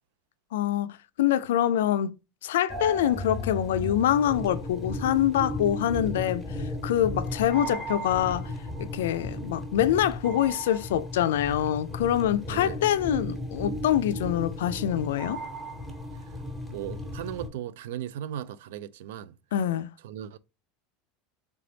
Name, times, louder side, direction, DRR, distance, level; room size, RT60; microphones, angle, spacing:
voice 1, 0.5-0.9 1.2-2.1 2.4-6.5 6.8-8.5 8.8-15.4 19.5-19.9, left 11 dB, 90° left, 0.3 m, -25 dB
sound 1, 2.7-17.5, left 1 dB, ahead, 1.2 m, -35 dB
voice 2, 12.5-12.8 16.7-19.3 20.0-20.4, right 11 dB, 80° right, 0.4 m, -37 dB
3.4 x 3.3 x 3.8 m
supercardioid pair, 130°, 0 cm